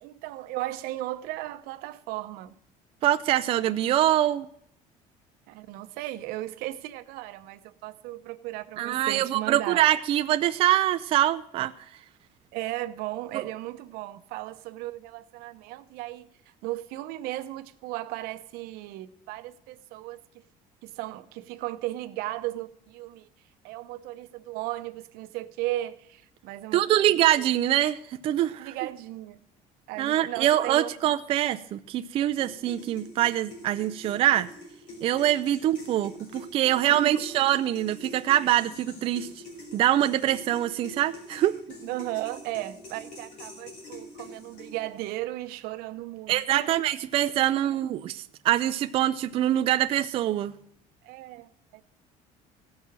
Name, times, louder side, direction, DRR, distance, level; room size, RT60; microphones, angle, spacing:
voice 1, 0.0-2.6 5.5-9.8 12.5-16.3 16.6-20.2 20.8-23.3 23.6-27.1 28.6-29.4 29.9-30.9 36.9-37.1 38.4-38.5 41.8-46.7 47.2-47.3 47.5-47.8 51.0-51.8, right 16 dB, 80° right, 0.9 m, -36 dB
voice 2, 3.0-4.5 8.8-11.7 13.3-13.4 26.7-28.0 28.2-28.7 30.0-34.5 35.0-39.3 39.7-41.6 46.3-50.5, right 13 dB, 35° right, 0.4 m, -24 dB
sound 1, 32.4-45.0, left 1 dB, 55° left, 4.0 m, -45 dB
16.5 x 6.4 x 7.2 m
cardioid pair, 180°, 15 cm